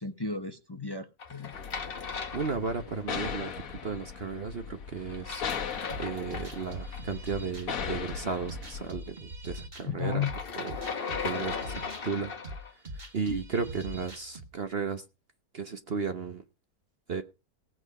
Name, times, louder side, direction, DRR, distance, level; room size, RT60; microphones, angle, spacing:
voice 1, 0.0-1.5 9.8-10.3, left 5 dB, 20° left, 6 dB, 0.9 m, -33 dB
sound 1, 1.2-3.2 5.1-7.0 10.0-12.7, left 5 dB, 40° left, 1.1 m, -37 dB
sound 2, 1.5-8.9, left 6 dB, 60° left, 1.4 m, -39 dB
voice 2, 2.3-5.4 6.0-10.2 10.6-12.3 13.1-15.0 15.5-16.4 17.1-17.2, right 5 dB, 45° right, 8 dB, 1.0 m, -34 dB
sound 3, 5.9-14.5, equal, 30° right, 2.0 m, -42 dB
17.5 x 7.9 x 4.8 m, 0.29 s
omnidirectional pair, 1.7 m